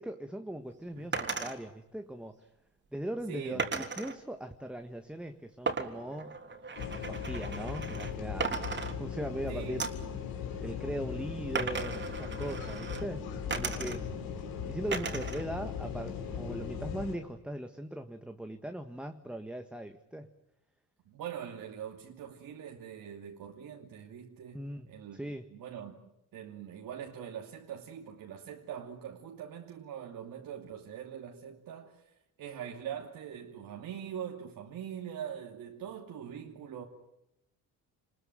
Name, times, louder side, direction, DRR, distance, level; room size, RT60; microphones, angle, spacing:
voice 1, 0.0-2.4 2.9-6.4 7.1-9.8 10.6-14.1 14.7-20.3 24.5-24.9 25.1-25.5, right 1 dB, 5° right, 1.6 m, -39 dB
sound 1, 1.1-1.6 3.6-4.2 5.7-8.1 8.4-9.4 9.8-10.1 11.5-13.0 13.5-14.2 14.9-15.4 15.8-16.6, right 4 dB, 30° right, 3.5 m, -36 dB
voice 2, 3.3-3.7 9.5-9.9 21.1-25.2 25.5-26.0 26.3-36.8, right 9 dB, 70° right, 2.8 m, -43 dB
sound 2, 6.8-17.2, left 7 dB, 85° left, 4.9 m, -38 dB
29.0 x 21.5 x 9.4 m
cardioid pair, 105°, 35 cm